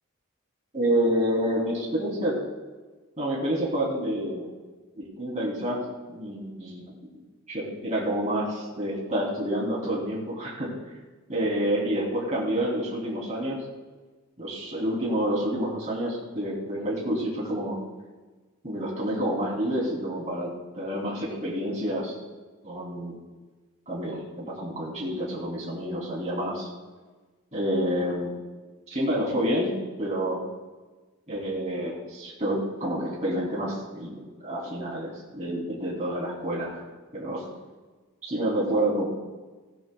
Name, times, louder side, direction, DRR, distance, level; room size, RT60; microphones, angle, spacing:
voice 1, 0.7-2.4 3.2-4.5 4.9-5.8 6.1-6.9 7.5-10.7 11.3-13.6 14.4-17.8 18.6-22.2 22.6-23.2 23.9-26.7 27.5-28.3 28.9-29.7 30.0-30.4 31.3-36.8 37.1-37.4 38.2-39.0, right 1 dB, 35° right, -5 dB, 3.1 m, -28 dB
18.0 x 17.0 x 2.3 m, 1.3 s
head